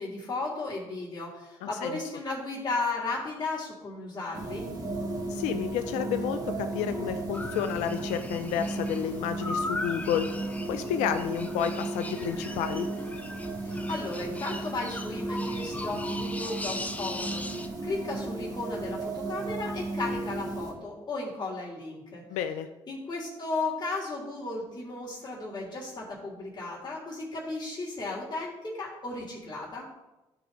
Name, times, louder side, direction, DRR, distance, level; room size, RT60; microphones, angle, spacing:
voice 1, 0.0-4.7 13.6-17.4 17.8-22.2 22.9-29.9, left 3 dB, 35° left, -5 dB, 3.2 m, -35 dB
sound 1, 4.3-20.7, right 2 dB, 30° right, 2.3 m, -35 dB
voice 2, 5.3-10.3 10.7-12.9 22.3-22.7, left 9 dB, 85° left, 8 dB, 0.5 m, -30 dB
sound 2, 7.3-17.7, left 2 dB, 15° left, 0.9 m, -39 dB
12.0 x 4.8 x 3.8 m, 1.0 s
supercardioid pair, 60°, 12 cm